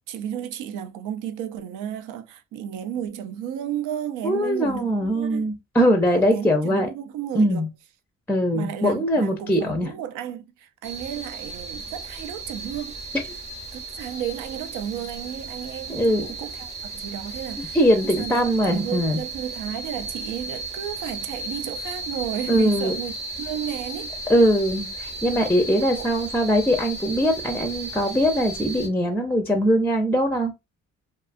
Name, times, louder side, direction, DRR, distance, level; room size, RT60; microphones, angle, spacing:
voice 1, 0.1-5.5 6.2-7.7 8.5-13.0 13.7-17.8 18.2-18.4 18.7-24.1 26.0-26.2, right 10 dB, 90° right, 0.5 m, -33 dB
voice 2, 4.2-6.9 7.3-7.7 8.3-9.9 15.9-16.3 17.7-19.2 22.5-22.9 24.3-30.5, equal, 5° left, 0.4 m, -21 dB
sound 1, 10.8-28.9, right 2 dB, 25° right, 0.7 m, -35 dB
2.5 x 2.3 x 2.4 m
cardioid pair, 90°, 30 cm